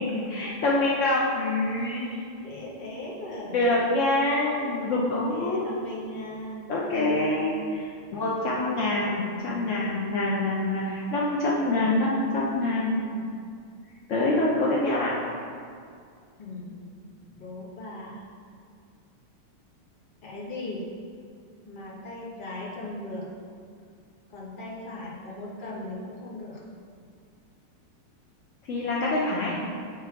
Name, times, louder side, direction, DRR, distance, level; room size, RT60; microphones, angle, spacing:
voice 1, 0.0-2.2 3.5-5.6 6.7-7.8 8.1-12.9 14.1-15.1 28.7-29.6, left 2 dB, 75° left, -5 dB, 0.7 m, -25 dB
voice 2, 2.4-3.8 5.1-7.6 8.8-9.7 13.0-13.3 16.4-18.3 20.2-20.9 21.6-23.3 24.3-26.6, left 1 dB, 35° left, -5 dB, 0.9 m, -39 dB
8.5 x 3.3 x 4.5 m, 2.3 s
omnidirectional pair, 2.3 m